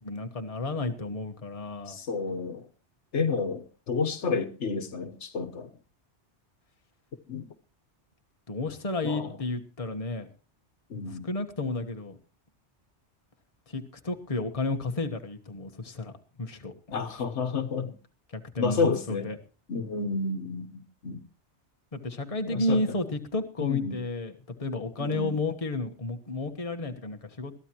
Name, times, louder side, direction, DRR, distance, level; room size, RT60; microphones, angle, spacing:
voice 1, 0.0-2.0 8.5-10.3 11.1-12.2 13.7-16.1 16.4-17.0 18.3-19.4 21.9-24.3 24.6-27.5, left 2 dB, 30° left, 1.3 m, -32 dB
voice 2, 1.9-2.7 3.1-5.7 7.3-7.5 9.0-9.4 10.9-11.3 16.9-18.0 18.6-19.3 19.7-21.2 22.5-22.8 23.6-24.0 25.0-25.4, left 4 dB, 80° left, 1.4 m, -30 dB
21.5 x 14.0 x 3.0 m
omnidirectional pair, 1.2 m